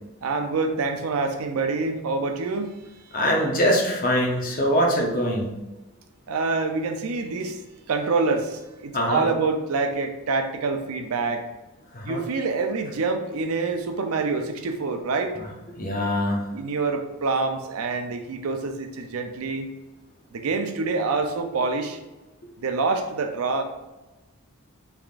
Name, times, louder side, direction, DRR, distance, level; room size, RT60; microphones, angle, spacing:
voice 1, 0.2-2.7 6.3-7.6 7.9-11.4 12.0-15.4 16.5-19.7 20.3-22.0 22.6-23.6, right 4 dB, 80° right, 5 dB, 0.5 m, -26 dB
voice 2, 3.1-5.5 8.9-9.2 11.9-12.2 15.8-16.4, equal, 40° left, 0 dB, 0.7 m, -23 dB
3.4 x 3.4 x 2.4 m, 1.1 s
head